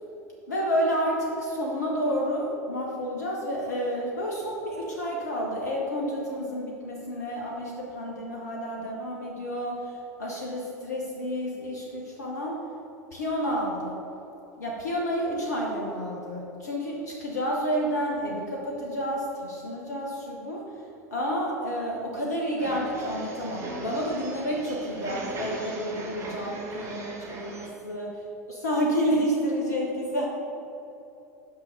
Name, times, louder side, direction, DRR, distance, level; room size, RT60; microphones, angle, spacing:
voice 1, 0.5-12.6 13.1-14.0 14.6-20.6 21.1-28.1 28.6-30.3, equal, 75° left, -2 dB, 1.0 m, -30 dB
sound 1, 22.6-27.7, right 2 dB, 35° right, 1.5 m, -39 dB
6.0 x 5.6 x 6.6 m, 2.9 s
figure-of-eight pair, 80°, 9 cm